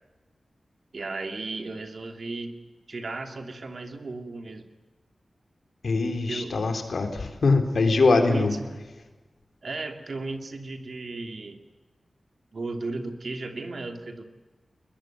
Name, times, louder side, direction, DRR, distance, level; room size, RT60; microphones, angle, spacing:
voice 1, 0.9-2.6 2.9-4.6 6.3-6.5 8.1-8.7 9.6-11.6 12.5-14.2, right 3 dB, 60° right, 6 dB, 2.9 m, -35 dB
voice 2, 5.8-8.5, left 3 dB, 75° left, 6 dB, 3.7 m, -22 dB
21.5 x 21.0 x 9.4 m, 1.2 s
wide cardioid pair, 90°, 0 cm